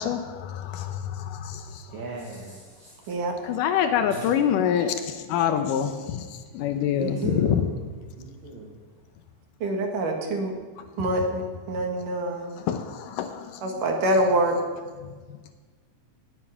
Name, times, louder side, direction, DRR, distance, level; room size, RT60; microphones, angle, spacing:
voice 1, 0.0-2.0 3.4-7.8 10.8-11.1 12.5-13.8 15.0-15.5, left 9 dB, 85° left, 7 dB, 2.5 m, -27 dB
voice 2, 1.9-2.9 6.9-7.7 8.2-8.7, right 3 dB, 40° right, -2 dB, 2.3 m, -35 dB
voice 3, 9.6-10.5 11.0-12.5 13.6-14.5, right 1 dB, 75° right, 2 dB, 3.5 m, -25 dB
18.5 x 9.6 x 5.8 m, 1.4 s
omnidirectional pair, 3.8 m